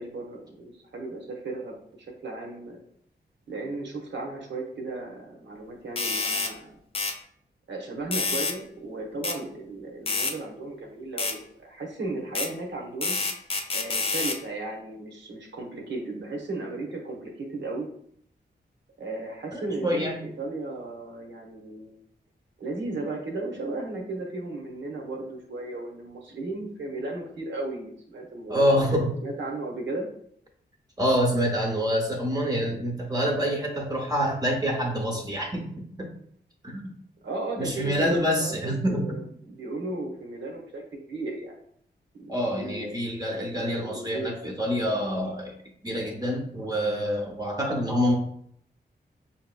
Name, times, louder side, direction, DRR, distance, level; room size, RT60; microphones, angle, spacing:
voice 1, 0.0-1.7 2.2-2.8 3.5-6.8 7.7-13.2 13.7-17.9 19.0-22.0 22.6-28.9 29.2-30.1 37.2-41.5 42.2-43.0 43.8-44.3, right 2 dB, 90° right, 0 dB, 1.0 m, -35 dB
sound 1, 6.0-6.5 7.0-7.2 8.1-8.6 9.2-9.4 10.1-10.4 11.2-11.4 12.4-12.5 13.0-14.4, left 3 dB, 30° left, 0.4 m, -28 dB
voice 2, 19.5-20.2 28.5-29.1 31.0-35.7 36.0-36.1 36.6-36.8 37.6-39.2 42.3-45.5 45.8-48.1, equal, 20° right, -1 dB, 0.6 m, -26 dB
5.4 x 2.8 x 2.2 m, 0.67 s
wide cardioid pair, 110°, 18 cm